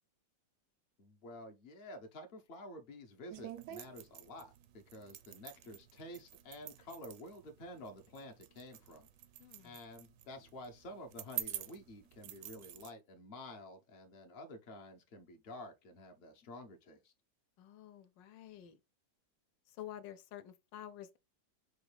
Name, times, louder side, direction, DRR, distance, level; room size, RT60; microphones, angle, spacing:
voice 1, 1.0-9.1 9.6-17.1, left 1 dB, 60° left, 0.6 m, -50 dB
sound 1, 3.3-12.9, right 12 dB, 75° right, 1.1 m, -48 dB
voice 2, 9.4-9.8 17.6-18.8 19.7-21.2, left 11 dB, 75° left, 1.2 m, -50 dB
5.2 x 2.3 x 3.2 m
omnidirectional pair, 2.0 m